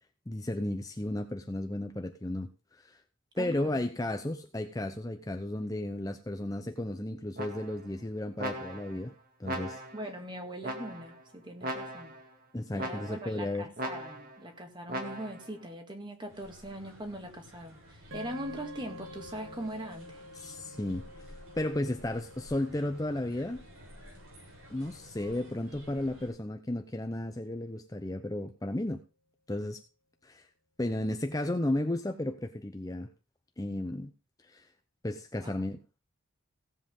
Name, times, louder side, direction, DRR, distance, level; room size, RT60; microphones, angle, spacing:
voice 1, 0.3-2.5 2.8-3.0 3.3-9.1 9.4-9.8 12.5-13.7 20.4-21.1 21.6-23.7 24.7-29.0 29.5-29.8 30.2-30.5 30.8-33.1 33.6-34.1 34.4-34.7 35.0-35.8, left 1 dB, 15° left, 0.7 m, -34 dB
voice 2, 3.4-3.8 9.9-12.2 12.7-20.2 35.4-35.5, right 1 dB, 20° right, 2.0 m, -41 dB
Multiple trombone blips C, 7.4-7.9 8.4-9.0 9.4-10.1 10.6-11.2 11.6-12.3 12.8-13.4 13.8-14.4 14.9-15.5, right 1 dB, 45° right, 2.0 m, -38 dB
sound 1, 16.3-26.3, equal, 85° right, 7.3 m, -53 dB
sound 2, 18.1-26.5, equal, 60° right, 2.3 m, -50 dB
17.0 x 7.8 x 3.7 m
head